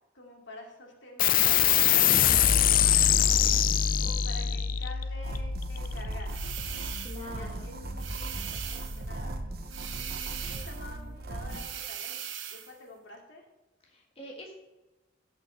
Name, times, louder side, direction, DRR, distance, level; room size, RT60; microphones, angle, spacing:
voice 1, 0.1-3.4 4.0-6.5 7.3-12.2 12.5-13.4, left 2 dB, 70° left, 0 dB, 2.7 m, -48 dB
sound 1, 1.2-8.1, left 9 dB, 45° left, 0.5 m, -25 dB
sound 2, 5.2-11.7, right 2 dB, 55° right, 0.9 m, -38 dB
sound 3, 6.3-7.4 8.0-9.1 9.7-10.9 11.5-12.7, right 10 dB, 85° right, 1.1 m, -39 dB
voice 2, 7.0-7.7 13.8-14.5, left 1 dB, 30° left, -1 dB, 1.6 m, -44 dB
16.5 x 5.9 x 4.0 m, 1.0 s
head